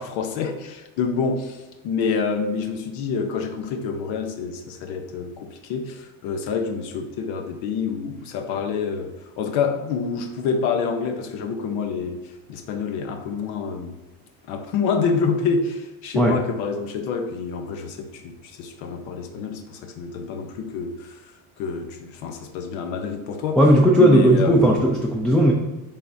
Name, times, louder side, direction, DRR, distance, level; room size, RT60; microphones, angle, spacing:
voice 1, 0.0-14.0 14.5-21.2 21.6-23.6 24.0-24.8, left 5 dB, 85° left, 5 dB, 0.9 m, -27 dB
voice 2, 23.6-25.5, equal, ahead, -2 dB, 0.4 m, -16 dB
10.5 x 3.7 x 2.7 m, 1.1 s
cardioid pair, 140°, 36 cm